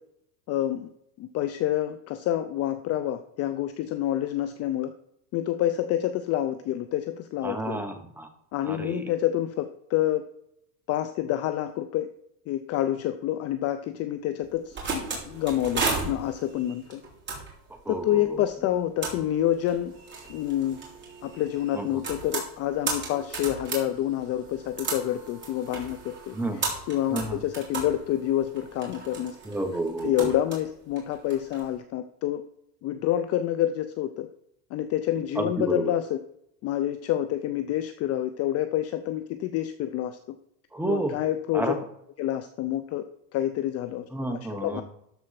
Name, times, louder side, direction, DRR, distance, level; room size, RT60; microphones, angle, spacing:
voice 1, 0.5-0.9 1.2-4.9 5.3-7.8 8.5-10.2 10.9-12.1 12.5-17.0 17.9-19.9 20.3-20.8 21.2-29.4 30.0-32.4 32.8-34.3 34.7-36.2 36.6-40.4 40.9-41.7 42.2-43.1 43.3-44.8, left 12 dB, 35° left, 10 dB, 0.5 m, -28 dB
voice 2, 7.4-8.3 8.7-9.0 17.8-18.2 21.7-22.0 26.3-26.6 27.1-27.4 29.5-30.3 35.4-35.9 40.7-41.2 41.5-41.7 44.1-44.8, right 2 dB, 5° right, 6 dB, 1.1 m, -30 dB
sound 1, 14.4-31.7, right 4 dB, 25° right, 3.4 m, -36 dB
13.0 x 4.4 x 5.8 m, 0.75 s
supercardioid pair, 130°, 48 cm